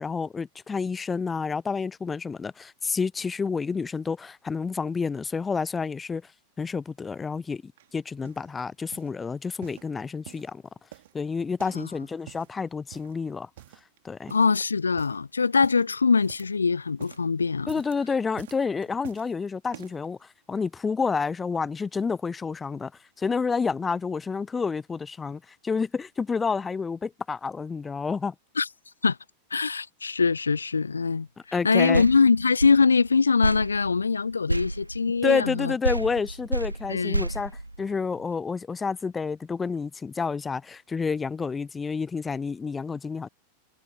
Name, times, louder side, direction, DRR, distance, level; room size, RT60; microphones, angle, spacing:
voice 1, 0.0-6.2 6.6-10.6 11.1-13.5 14.0-14.3 17.7-20.2 20.5-22.9 23.2-28.3 31.5-32.1 35.2-37.5 37.8-43.3, left 5 dB, 15° left, 0.7 m, -29 dB
sound 1, 7.8-8.5 8.9-9.2 9.6-10.5 10.9-11.9 12.1-12.5 12.9-13.2 13.6-14.0 14.3-14.6 14.9-15.2 15.6-16.6 16.9-17.3 17.6-18.0 18.4-19.3 19.7-20.1 20.7-20.8, right 14 dB, 55° right, 2.4 m, -48 dB
voice 2, 14.3-17.7 28.6-28.7 29.0-29.2 29.5-35.7 36.9-37.3, left 4 dB, 75° left, 0.3 m, -23 dB
sound 2, 31.9-35.6 35.8-38.3, right 1 dB, 85° right, 1.9 m, -31 dB
figure-of-eight pair, 90°, 0 cm